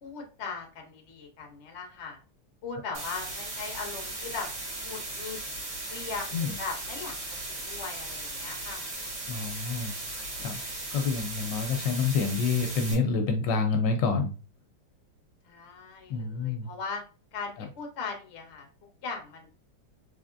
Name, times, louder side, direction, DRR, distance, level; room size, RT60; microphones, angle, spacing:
voice 1, 0.0-2.2 2.6-4.5 4.8-5.4 5.9-7.2 7.5-8.9 15.4-17.0 17.3-18.7 19.0-19.5, left 4 dB, 45° left, 1 dB, 1.0 m, -39 dB
sound 1, 2.9-12.9, right 2 dB, 75° right, 2.2 m, -37 dB
voice 2, 9.3-10.0 10.4-10.6 10.9-14.3 16.1-16.7, left 4 dB, 75° left, 5 dB, 1.3 m, -27 dB
3.7 x 3.4 x 2.5 m, 0.36 s
omnidirectional pair, 2.0 m